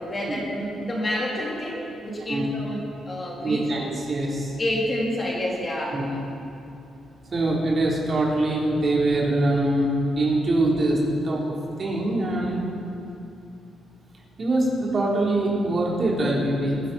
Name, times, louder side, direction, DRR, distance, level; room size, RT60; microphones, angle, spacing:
voice 1, 0.0-3.7 4.6-6.0, left 1 dB, 30° left, -4 dB, 3.8 m, -28 dB
voice 2, 3.4-4.5 5.9-6.0 7.3-9.9 10.2-11.0 11.2-11.4 11.8-12.6 14.4-16.8, right 2 dB, 40° right, -4 dB, 3.8 m, -23 dB
23.5 x 10.5 x 4.3 m, 2.7 s
cardioid pair, 95°, 0 cm